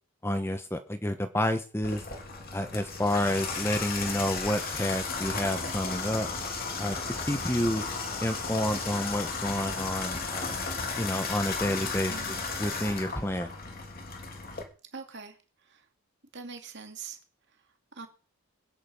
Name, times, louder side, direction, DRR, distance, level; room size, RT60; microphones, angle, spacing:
voice 1, 0.2-2.0 2.5-6.3 6.8-6.9 7.3-7.8 8.2-10.6 11.0-13.5, left 1 dB, 10° left, 8 dB, 1.0 m, -29 dB
Water tap faucet / Bathtub (filling or washing), 1.8-14.6, left 4 dB, 40° left, 3.1 m, -34 dB
voice 2, 12.1-12.5 14.9-15.4 15.7-15.8 16.3-17.2 18.0-18.1, right 5 dB, 50° right, 5 dB, 2.7 m, -42 dB
21.0 x 10.5 x 5.5 m, 0.38 s
head